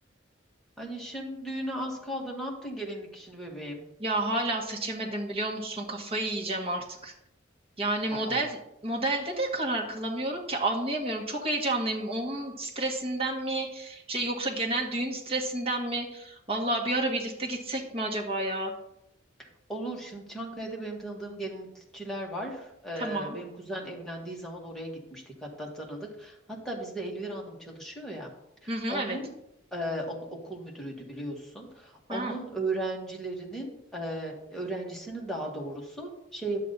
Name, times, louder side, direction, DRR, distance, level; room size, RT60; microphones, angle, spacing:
voice 1, 0.8-3.8 8.3-8.4 19.4-26.4 26.6-28.3 28.6-29.3 29.7-36.6, right 1 dB, ahead, -2 dB, 1.9 m, -36 dB
voice 2, 4.0-7.1 7.8-8.6 8.8-18.7 23.0-23.4 28.7-29.2 32.1-32.3, right 2 dB, 30° right, -1 dB, 1.7 m, -30 dB
10.5 x 7.4 x 4.1 m, 0.84 s
head